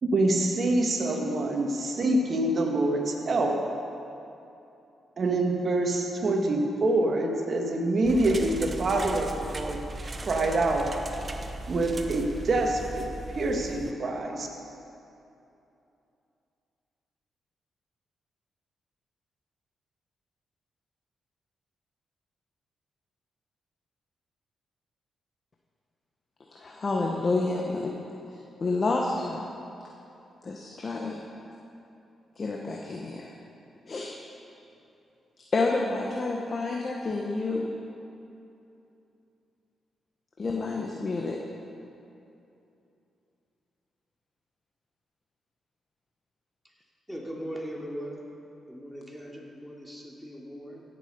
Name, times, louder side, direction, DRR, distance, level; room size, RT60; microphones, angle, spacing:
voice 1, 0.0-3.6 5.2-9.8 10.2-10.9 11.7-13.1 13.3-14.5, right 2 dB, 55° right, 2 dB, 1.8 m, -26 dB
sound 1, 8.0-13.9, right 2 dB, 40° right, 0.9 m, -38 dB
voice 2, 26.5-27.9 28.3-29.4 30.4-31.2 32.4-33.3 33.9-34.1 35.4-37.7 40.4-41.4, left 3 dB, 45° left, 0 dB, 1.2 m, -29 dB
voice 3, 47.1-48.2 48.7-50.8, equal, ahead, -3 dB, 3.0 m, -39 dB
16.5 x 7.6 x 5.3 m, 2.8 s
supercardioid pair, 50°, 0 cm